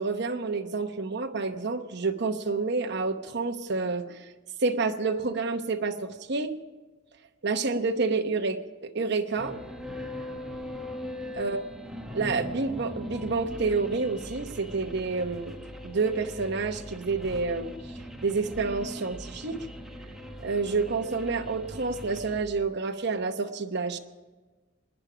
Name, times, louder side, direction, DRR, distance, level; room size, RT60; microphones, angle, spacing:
voice 1, 0.0-4.2 4.6-6.5 7.4-9.6 11.3-11.7 12.1-15.6 15.8-17.7 18.2-19.6 20.4-24.0, right 4 dB, 55° right, 5 dB, 0.9 m, -29 dB
sound 1, 9.4-22.4, equal, ahead, 1.1 m, -40 dB
23.5 x 10.0 x 5.0 m, 1.3 s
head